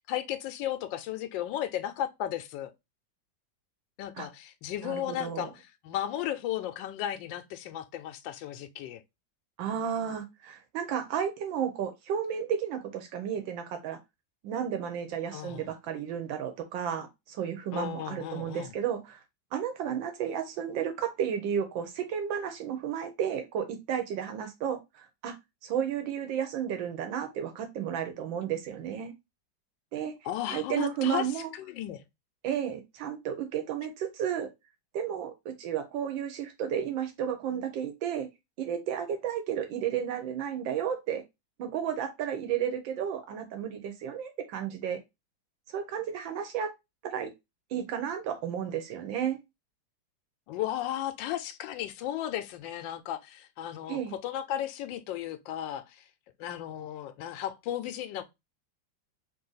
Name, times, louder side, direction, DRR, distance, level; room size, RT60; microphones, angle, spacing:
voice 1, 0.1-2.7 4.0-9.0 15.3-15.7 17.7-18.7 30.2-31.3 31.5-32.0 50.5-56.0 56.4-58.2, left 11 dB, 75° left, 1.3 m, -35 dB
voice 2, 4.8-5.5 9.6-14.0 14.4-19.2 19.5-25.3 25.6-29.1 29.9-30.1 30.5-31.5 32.4-34.5 34.9-38.3 38.6-41.2 41.6-45.0 45.7-46.7 47.0-47.3 47.7-49.4 53.9-54.1, right 8 dB, 85° right, 1.5 m, -32 dB
3.4 x 2.6 x 3.8 m
omnidirectional pair, 2.1 m